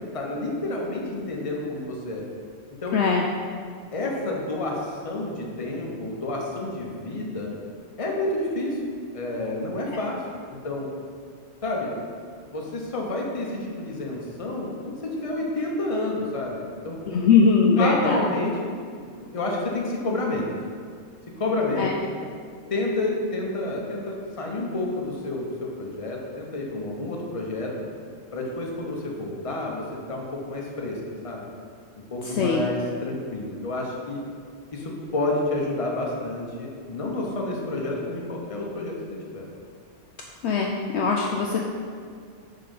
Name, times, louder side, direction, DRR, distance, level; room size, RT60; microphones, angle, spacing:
voice 1, 0.1-2.2 2.8-3.0 3.9-7.5 8.0-8.8 9.1-10.9 11.6-11.9 12.5-17.0 17.8-18.7 19.0-20.5 21.4-22.0 22.7-27.7 28.3-31.5 32.1-34.2 34.7-39.0 39.3-39.5, left 2 dB, 30° left, -1 dB, 0.9 m, -29 dB
voice 2, 2.9-3.2 17.1-18.2 21.8-21.9 32.2-32.6 40.4-41.7, left 5 dB, 65° left, 0 dB, 0.8 m, -21 dB
5.7 x 5.1 x 5.3 m, 2.1 s
omnidirectional pair, 1.3 m